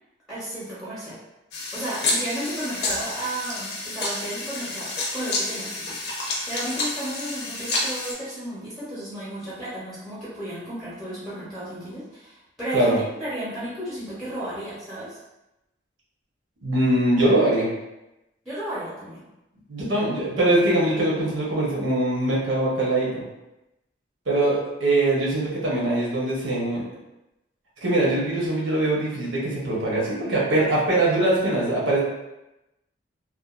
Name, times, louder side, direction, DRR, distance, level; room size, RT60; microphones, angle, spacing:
voice 1, 0.3-1.2 1.7-12.9 13.2-15.2 18.4-19.2, right 1 dB, ahead, -11 dB, 0.6 m, -33 dB
sound 1, 1.5-8.1, left 2 dB, 60° left, 0.5 m, -29 dB
voice 2, 16.6-17.7 19.7-23.2 24.3-26.9 27.8-32.0, right 1 dB, 85° right, -5 dB, 0.8 m, -22 dB
2.6 x 2.2 x 2.3 m, 0.94 s
head